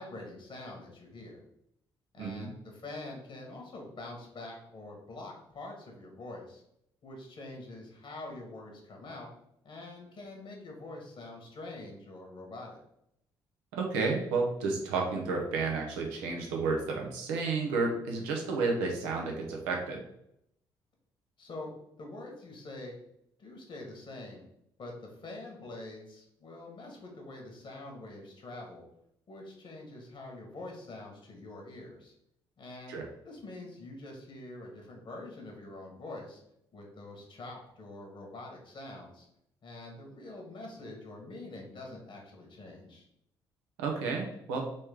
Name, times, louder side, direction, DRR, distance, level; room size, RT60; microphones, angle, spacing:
voice 1, 0.0-1.4 2.1-6.6 7.0-9.3 9.6-12.8 21.4-21.7 22.0-22.9 23.4-24.4 24.8-28.8 29.3-32.1 32.6-33.0 33.2-36.4 36.7-39.3 39.6-43.0, left 2 dB, 50° left, 0 dB, 1.6 m, -45 dB
voice 2, 2.2-2.5 13.7-20.0 32.9-33.0 43.8-44.7, right 4 dB, 80° right, 0 dB, 0.9 m, -31 dB
4.1 x 3.2 x 3.6 m, 0.76 s
hypercardioid pair, 45°, 11 cm